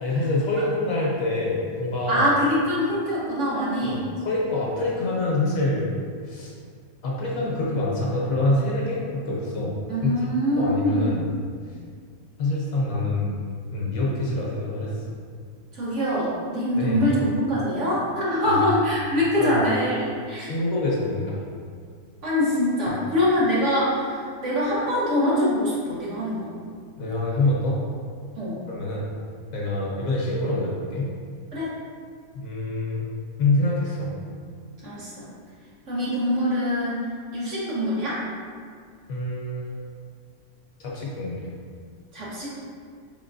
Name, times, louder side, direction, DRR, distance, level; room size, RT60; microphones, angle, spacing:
voice 1, 0.0-2.3 3.8-5.9 6.2-6.6 7.0-10.3 10.6-11.3 12.4-13.4 13.7-15.0 16.8-17.1 18.5-18.6 19.4-19.6 20.4-21.4 22.9-23.0 27.0-27.8 28.7-29.1 29.5-31.1 32.3-33.1 33.4-34.1 39.1-39.8 40.8-41.5, left 2 dB, 65° left, -4 dB, 1.1 m, -26 dB
voice 2, 2.1-4.0 9.9-11.1 15.7-20.5 22.2-26.5 28.3-28.6 31.5-31.7 34.8-35.3 35.9-37.0 37.3-38.2 42.1-42.6, left 1 dB, 55° right, -8 dB, 1.3 m, -24 dB
4.3 x 3.6 x 2.6 m, 2.1 s
omnidirectional pair, 1.6 m